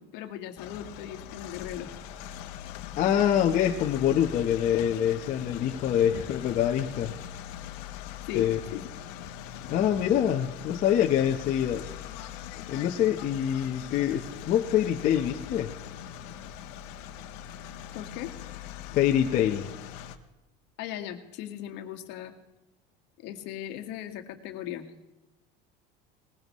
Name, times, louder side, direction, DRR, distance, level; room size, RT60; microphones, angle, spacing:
voice 1, 0.0-1.9 8.3-8.5 8.7-8.9 17.9-18.3 20.8-22.3 23.2-24.9, left 12 dB, 60° left, 6 dB, 1.7 m, -38 dB
sound 1, 0.6-20.2, left 10 dB, 75° left, 1.3 m, -41 dB
voice 2, 3.0-7.1 8.3-8.6 9.7-11.8 12.7-15.7 18.9-19.7, left 10 dB, 40° left, 1 dB, 1.1 m, -25 dB
19.5 x 15.5 x 3.2 m, 1.0 s
supercardioid pair, 135°, 20 cm